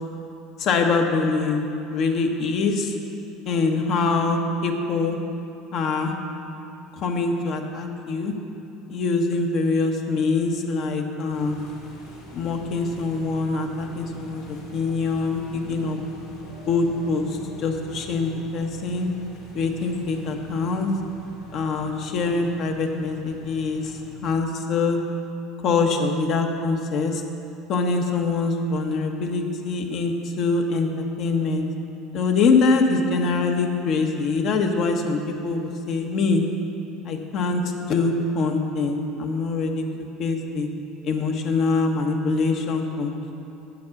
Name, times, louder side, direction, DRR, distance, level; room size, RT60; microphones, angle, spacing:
voice 1, 0.6-1.6 1.9-2.9 3.5-5.2 5.7-6.2 7.0-8.3 8.9-11.6 12.3-16.0 16.7-17.3 17.6-19.1 19.5-20.9 21.5-23.9 24.2-25.0 25.6-27.2 27.7-31.7 32.1-36.4 37.0-37.6 37.9-39.8 40.2-40.7 41.0-43.3, left 4 dB, 55° left, 3 dB, 1.1 m, -24 dB
sound 1, 11.3-24.2, left 1 dB, 85° left, 2.5 m, -44 dB
8.6 x 7.5 x 5.9 m, 2.8 s
supercardioid pair, 105°, 0 cm